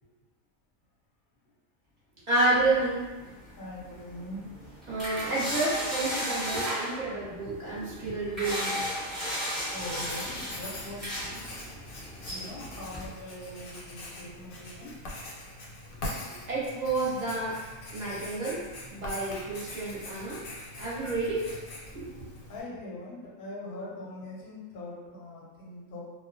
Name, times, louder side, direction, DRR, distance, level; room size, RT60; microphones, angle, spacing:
voice 1, 2.3-3.0 4.9-8.8 16.5-17.5 17.9-18.6 18.9-20.4 20.8-21.5 21.9-22.1, right 2 dB, 40° right, -8 dB, 0.7 m, -29 dB
sound 1, 2.6-13.1, equal, ahead, 0.7 m, -36 dB
voice 2, 3.6-4.4 9.7-11.5 12.3-15.0 22.5-26.0, left 1 dB, 50° left, -5 dB, 0.6 m, -42 dB
Writing, 9.8-22.6, left 1 dB, 90° left, 1.0 m, -43 dB
2.1 x 2.1 x 2.6 m, 1.2 s
omnidirectional pair, 1.4 m